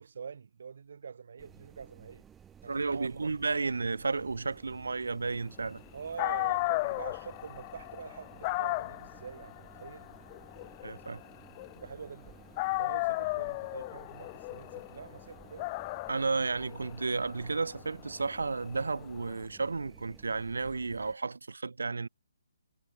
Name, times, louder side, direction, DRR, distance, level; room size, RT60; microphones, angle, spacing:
voice 1, 0.0-2.2 2.6-3.3 5.9-10.1 11.7-12.4 12.8-15.7, right 6 dB, 60° right, 7.1 m, -45 dB
sound 1, 1.4-21.2, right 8 dB, 10° right, 2.5 m, -56 dB
voice 2, 2.7-5.8 10.8-11.2 16.1-22.1, right 4 dB, 90° right, 1.1 m, -32 dB
Dog, 5.9-6.0 6.2-12.2 12.6-19.3, left 23 dB, 25° left, 0.7 m, -35 dB
hypercardioid pair, 160°, 0 cm